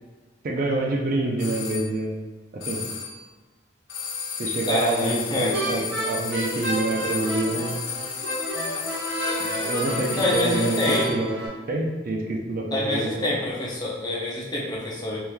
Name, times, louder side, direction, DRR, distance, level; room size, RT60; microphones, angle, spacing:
voice 1, 0.4-2.2 2.5-2.8 4.4-7.8 9.4-11.3 11.7-13.3, right 2 dB, 45° right, 0 dB, 0.4 m, -27 dB
sound 1, 1.4-1.9 2.6-3.2 3.9-11.3, left 6 dB, 75° left, 0.5 m, -33 dB
voice 2, 4.7-6.1 10.1-11.1 12.7-15.2, left 1 dB, 20° left, -4 dB, 0.5 m, -27 dB
sound 2, 5.5-11.5, equal, 70° right, 1.0 m, -30 dB
3.6 x 2.9 x 2.2 m, 1.3 s
head